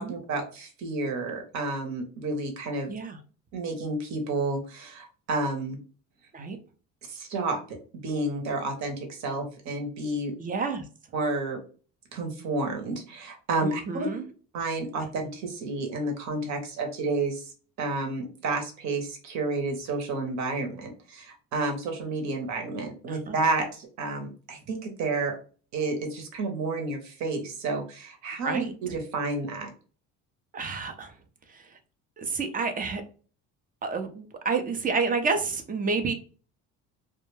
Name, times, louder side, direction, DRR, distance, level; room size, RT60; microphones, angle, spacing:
voice 1, 0.0-2.9 3.5-5.8 7.1-7.6 8.0-10.3 11.1-11.6 12.1-14.1 14.5-17.5 17.8-25.4 25.7-29.7, right 3 dB, 60° right, 3 dB, 0.9 m, -30 dB
voice 2, 10.4-10.8 13.6-14.2 23.1-23.4 28.4-29.0 30.5-31.1 31.5-31.6 32.2-33.0 33.8-36.1, right 4 dB, 25° right, 7 dB, 0.5 m, -29 dB
2.2 x 2.1 x 3.1 m, 0.38 s
cardioid pair, 105°, 32 cm